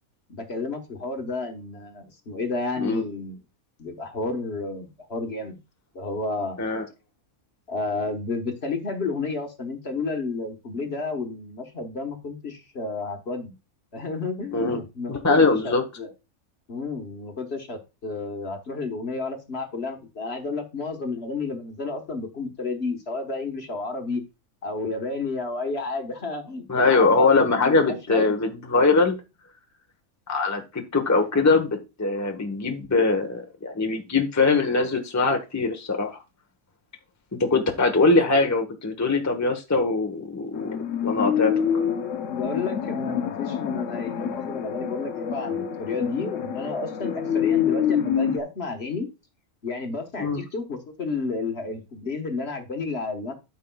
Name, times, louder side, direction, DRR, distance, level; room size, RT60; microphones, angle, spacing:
voice 1, 0.3-3.4 3.8-5.6 5.9-6.7 7.7-13.5 13.9-16.1 16.7-24.2 24.6-28.3 42.3-49.1 49.6-53.3, left 3 dB, 50° left, 5 dB, 1.5 m, -31 dB
voice 2, 15.1-15.8 26.7-29.2 30.3-36.2 37.3-41.5 50.2-50.4, left 3 dB, 15° left, 4 dB, 1.0 m, -22 dB
sound 1, 40.5-48.4, left 8 dB, 65° left, 1.1 m, -27 dB
13.0 x 5.5 x 2.3 m, 0.27 s
omnidirectional pair, 1.5 m